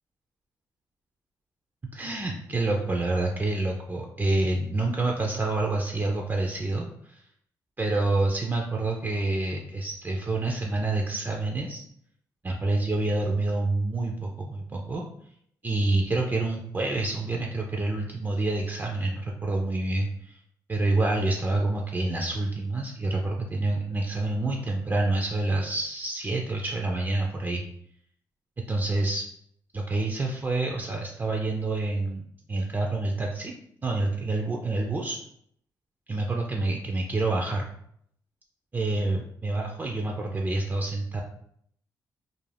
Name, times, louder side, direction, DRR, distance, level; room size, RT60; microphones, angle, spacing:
voice 1, 1.9-7.2 7.8-11.8 12.4-15.0 15.6-20.4 20.7-27.6 28.6-29.3 29.7-33.5 33.8-35.2 36.1-37.7 38.7-41.2, right 2 dB, 25° right, 0 dB, 0.4 m, -27 dB
2.4 x 2.0 x 3.2 m, 0.68 s
cardioid pair, 75°, 8 cm